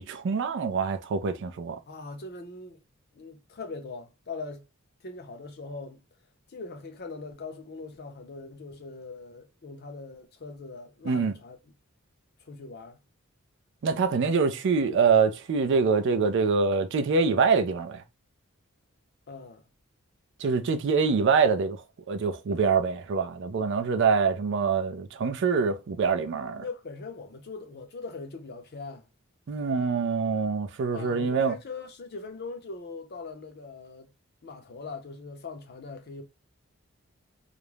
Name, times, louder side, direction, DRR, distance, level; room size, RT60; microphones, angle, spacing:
voice 1, 0.0-1.8 11.0-11.3 13.8-18.0 20.4-26.6 29.5-31.5, right 5 dB, 60° right, 0.4 m, -25 dB
voice 2, 1.9-2.8 3.1-4.7 5.0-6.0 6.5-11.6 12.4-13.0 19.3-19.6 26.6-29.1 30.9-34.1 34.4-36.2, left 3 dB, 50° left, 0.6 m, -41 dB
2.4 x 2.0 x 3.1 m
head